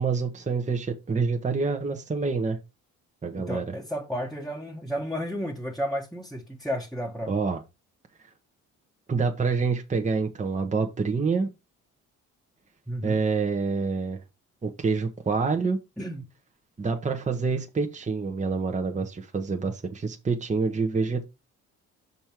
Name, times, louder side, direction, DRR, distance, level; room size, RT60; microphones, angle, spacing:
voice 1, 0.0-2.6 3.2-3.7 7.3-7.6 9.1-11.5 13.0-14.2 14.6-15.8 16.8-21.2, right 4 dB, 25° right, 1.1 m, -27 dB
voice 2, 3.3-7.3 12.9-13.2 16.0-16.2, equal, ahead, 1.3 m, -32 dB
6.3 x 5.5 x 4.5 m
cardioid pair, 90°, 30 cm